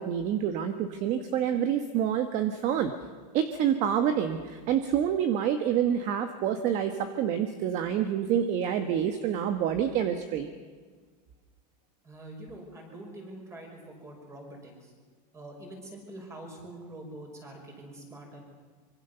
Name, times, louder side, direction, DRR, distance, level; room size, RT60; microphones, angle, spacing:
voice 1, 0.0-2.9 3.3-10.5, right 9 dB, 35° right, 8 dB, 1.3 m, -27 dB
voice 2, 12.0-14.9 15.3-18.4, right 1 dB, 15° right, 2 dB, 5.5 m, -45 dB
25.5 x 24.0 x 6.9 m, 1.5 s
supercardioid pair, 160°, 21 cm